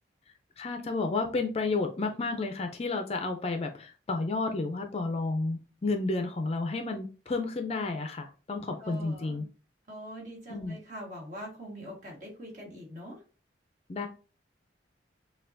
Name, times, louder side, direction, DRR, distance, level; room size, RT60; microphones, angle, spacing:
voice 1, 0.6-9.4 10.5-10.8 13.9-14.1, left 3 dB, 35° left, 5 dB, 0.4 m, -31 dB
voice 2, 8.8-9.5 9.9-13.2, equal, 40° right, -2 dB, 1.5 m, -43 dB
5.5 x 2.2 x 2.5 m, 0.35 s
head